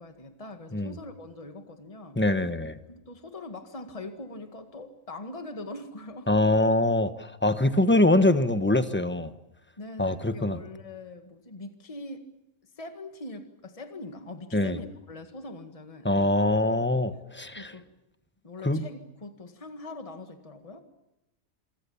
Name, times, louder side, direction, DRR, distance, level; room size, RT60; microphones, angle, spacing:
voice 1, 0.0-2.2 2.9-6.3 9.8-12.3 12.8-16.3 17.6-17.9 18.4-20.8, left 2 dB, 25° left, 1.9 m, -42 dB
voice 2, 2.2-2.8 6.3-9.3 10.0-10.6 14.5-14.8 16.0-17.7 18.6-18.8, left 2 dB, 10° left, 1.0 m, -23 dB
27.0 x 24.0 x 7.1 m
omnidirectional pair, 1.5 m